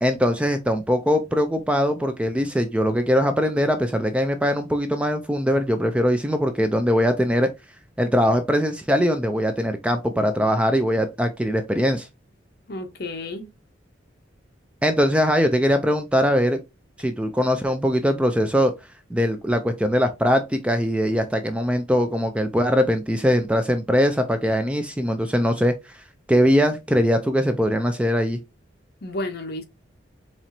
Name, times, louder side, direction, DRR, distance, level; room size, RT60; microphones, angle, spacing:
voice 1, 0.0-7.5 8.0-12.1 14.8-16.6 17.0-18.7 19.1-28.4, equal, 5° right, 0.3 m, -21 dB
voice 2, 12.7-13.5 29.0-29.6, left 2 dB, 50° left, 0.8 m, -31 dB
4.3 x 3.0 x 2.6 m
head